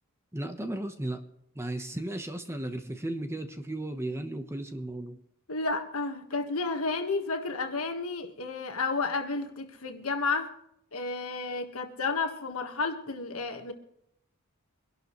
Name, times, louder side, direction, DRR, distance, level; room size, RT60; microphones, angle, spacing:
voice 1, 0.3-1.2 1.5-5.2, right 1 dB, 10° right, 1.1 m, -35 dB
voice 2, 5.5-10.5 10.9-13.7, left 3 dB, 70° left, 1.6 m, -31 dB
24.0 x 12.0 x 3.2 m
head